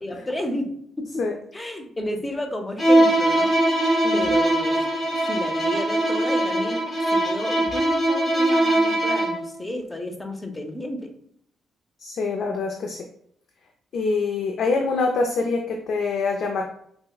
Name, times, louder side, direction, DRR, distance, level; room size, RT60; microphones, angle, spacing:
voice 1, 0.0-1.2 1.5-3.8 4.1-6.8 7.1-11.1, left 1 dB, 15° left, 5 dB, 0.6 m, -32 dB
Bowed string instrument, 2.8-9.5, right 1 dB, 35° left, 1.4 m, -21 dB
voice 2, 12.0-13.1 13.9-16.7, left 4 dB, 65° left, 2 dB, 0.4 m, -25 dB
6.0 x 2.1 x 2.3 m, 0.69 s
cardioid pair, 90°, 0 cm